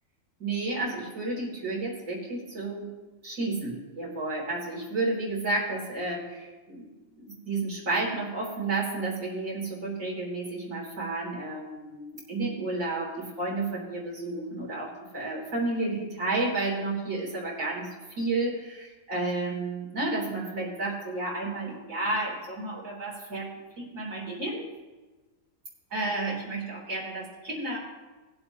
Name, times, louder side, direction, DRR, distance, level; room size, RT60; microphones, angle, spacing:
voice 1, 0.4-2.9 3.2-6.9 7.2-24.6 25.9-27.8, right 2 dB, 80° right, -5 dB, 3.5 m, -31 dB
19.5 x 7.7 x 2.9 m, 1.2 s
omnidirectional pair, 1.4 m